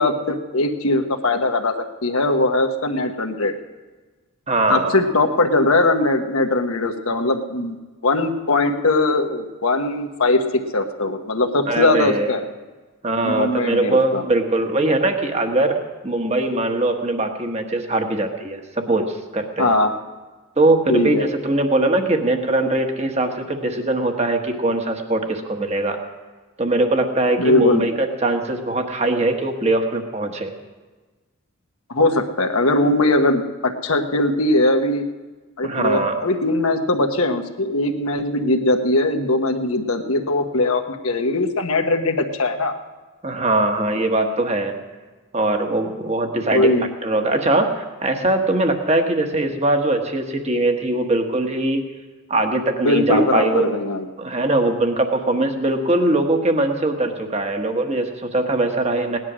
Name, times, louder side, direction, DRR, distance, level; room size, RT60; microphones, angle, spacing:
voice 1, 0.0-1.7 2.0-3.5 4.7-7.8 8.0-10.4 10.7-12.5 13.2-14.2 19.6-19.9 20.9-21.2 27.4-27.9 31.9-35.0 35.6-42.7 46.5-46.9 52.8-54.1, left 2 dB, 75° left, 4 dB, 1.3 m, -20 dB
voice 2, 4.5-5.0 11.7-12.3 13.0-19.8 20.6-26.0 26.6-30.5 35.6-36.2 43.2-44.8 45.3-51.9 52.3-53.7 54.2-59.2, right 2 dB, 30° right, 4 dB, 1.2 m, -21 dB
18.0 x 11.0 x 6.2 m, 1.3 s
head